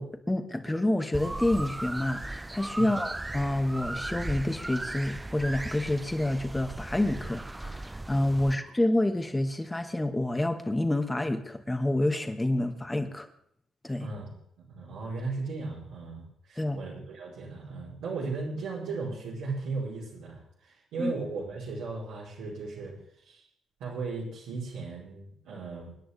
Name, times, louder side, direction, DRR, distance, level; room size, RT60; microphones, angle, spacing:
voice 1, 0.0-13.3 13.8-14.1 16.6-16.8 21.0-21.1, left 1 dB, 15° left, 6 dB, 2.4 m, -28 dB
Gibbon Monkey, 1.1-8.5, right 2 dB, 15° right, 0.5 m, -37 dB
voice 2, 8.4-8.7 14.0-23.5 23.8-25.9, right 3 dB, 70° right, -7 dB, 4.8 m, -37 dB
28.5 x 10.5 x 3.7 m, 0.71 s
hypercardioid pair, 45°, 0 cm